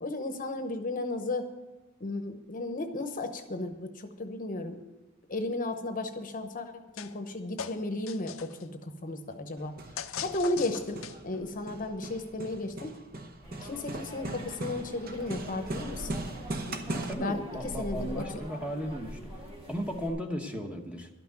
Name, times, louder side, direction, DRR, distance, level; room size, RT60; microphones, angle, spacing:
voice 1, 0.0-1.5 2.0-4.8 5.3-9.7 10.2-12.9 13.6-16.1 16.7-16.8 17.1-17.4 17.8-18.2, left 2 dB, 40° left, 7 dB, 0.9 m, -34 dB
sound 1, 7.0-7.3 7.6-8.6 10.0-11.4, left 8 dB, 65° left, 0.5 m, -40 dB
Hammer, 9.6-17.1, right 1 dB, 45° right, 0.9 m, -39 dB
sound 2, 13.4-20.1, equal, 25° right, 2.3 m, -44 dB
voice 2, 16.9-21.1, equal, 5° right, 3 dB, 1.0 m, -36 dB
12.5 x 6.0 x 9.0 m, 1.1 s
head